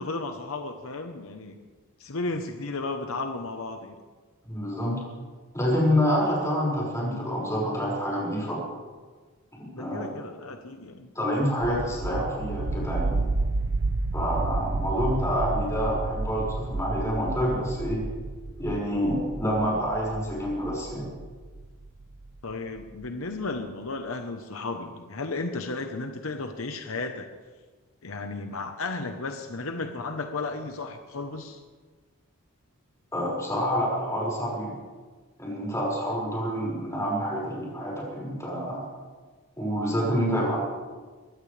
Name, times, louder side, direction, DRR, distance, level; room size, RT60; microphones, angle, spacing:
voice 1, 0.0-1.6 2.0-4.0 9.7-11.1 22.4-27.3 28.0-31.6, left 3 dB, 65° left, 5 dB, 1.0 m, -34 dB
voice 2, 4.5-5.0 5.5-8.6 9.8-10.0 11.1-13.3 14.1-18.0 18.6-21.1 33.1-34.7 35.4-38.8 39.6-40.6, equal, 15° left, -5 dB, 5.7 m, -27 dB
sound 1, 11.6-22.3, right 3 dB, 60° right, 0.8 m, -31 dB
22.5 x 16.0 x 3.4 m, 1.4 s
head